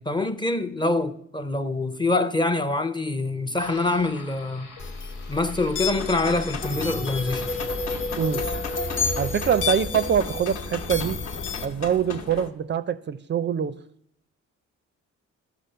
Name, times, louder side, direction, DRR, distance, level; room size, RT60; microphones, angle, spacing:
voice 1, 0.0-4.7 5.3-7.4, left 2 dB, 15° left, 0.5 m, -25 dB
sound 1, 3.6-9.5, left 4 dB, 85° left, 1.4 m, -45 dB
sound 2, 4.8-11.7, left 4 dB, 40° left, 0.9 m, -30 dB
sound 3, 5.9-12.5, left 4 dB, 60° left, 1.0 m, -37 dB
voice 2, 9.2-11.2 11.6-13.8, right 8 dB, 40° right, 0.4 m, -24 dB
11.5 x 4.9 x 6.7 m
cardioid pair, 90°, 30 cm